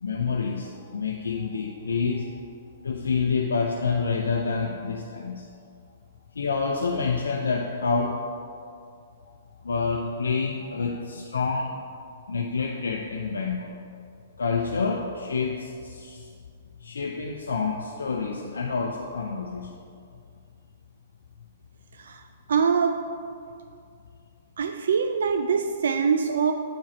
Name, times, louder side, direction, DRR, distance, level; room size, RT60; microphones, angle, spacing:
voice 1, 0.0-2.4 2.8-5.5 6.4-8.2 9.6-11.7 12.3-13.8 14.4-16.3 16.8-19.7, left 4 dB, 85° left, 0 dB, 0.6 m, -28 dB
voice 2, 22.5-23.0 24.6-26.5, right 6 dB, 70° right, 6 dB, 0.4 m, -23 dB
8.5 x 4.8 x 4.4 m, 2.4 s
hypercardioid pair, 125°, 0 cm